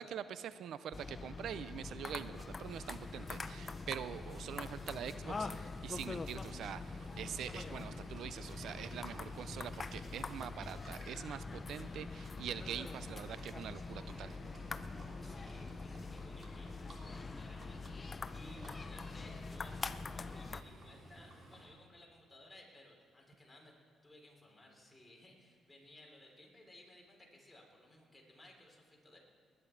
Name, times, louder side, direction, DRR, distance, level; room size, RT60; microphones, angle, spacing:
voice 1, 0.0-14.4, right 9 dB, 70° right, 14 dB, 0.4 m, -44 dB
sound 1, 0.9-20.6, left 4 dB, 30° left, 0.5 m, -44 dB
Livestock farm animals working animals, 2.6-21.7, right 1 dB, 45° right, 3.3 m, -55 dB
voice 2, 14.9-23.7 24.0-29.2, left 1 dB, 10° left, -2 dB, 3.6 m, -58 dB
19.5 x 9.9 x 4.5 m, 2.1 s
cardioid pair, 90°, 0 cm